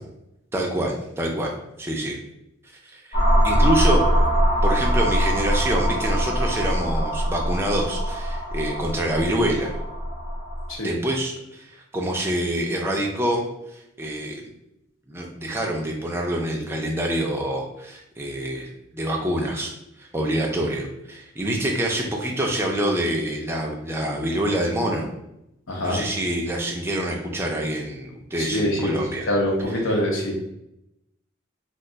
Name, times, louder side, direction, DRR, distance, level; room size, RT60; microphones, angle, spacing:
voice 1, 0.5-1.5 1.8-2.2 2.8-4.1 4.6-9.7 10.8-13.4 14.0-14.4 15.1-18.7 18.9-19.7 20.0-25.1 25.8-29.3, right 1 dB, 10° right, -1 dB, 0.4 m, -26 dB
sound 1, 3.1-10.7, equal, 30° left, 0.9 m, -22 dB
voice 2, 25.7-26.0 28.4-30.3, left 1 dB, 75° left, -1 dB, 0.8 m, -24 dB
2.4 x 2.3 x 3.8 m, 0.83 s
head